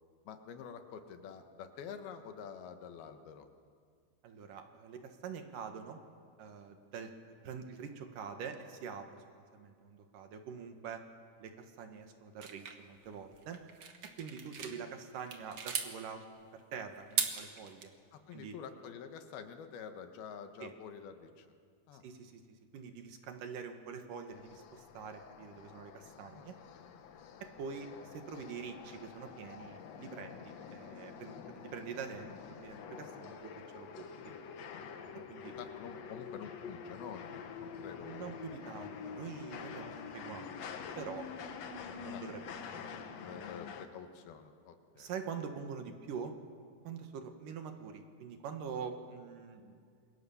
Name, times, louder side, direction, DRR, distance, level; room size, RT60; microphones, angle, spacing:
voice 1, 0.2-3.5 14.6-14.8 18.1-21.5 21.9-22.0 26.2-27.3 35.1-35.3 35.6-38.9 42.1-42.2 43.1-45.1, left 7 dB, 85° left, 7 dB, 3.3 m, -48 dB
voice 2, 4.2-6.0 6.4-9.2 9.5-11.0 11.4-13.6 14.2-17.9 18.3-18.5 20.6-20.7 22.0-22.4 22.7-26.5 27.4-34.1 35.3-35.5 38.0-40.6 41.0-41.3 41.7-43.4 44.9-46.3 46.8-49.8, right 6 dB, 65° right, 6 dB, 2.9 m, -45 dB
sound 1, 12.4-14.8 15.2-15.9 17.0-17.8, right 6 dB, 50° right, 1.7 m, -37 dB
sound 2, 24.3-43.9, left 6 dB, 60° left, 1.9 m, -47 dB
27.5 x 23.0 x 7.1 m, 2.2 s
omnidirectional pair, 4.3 m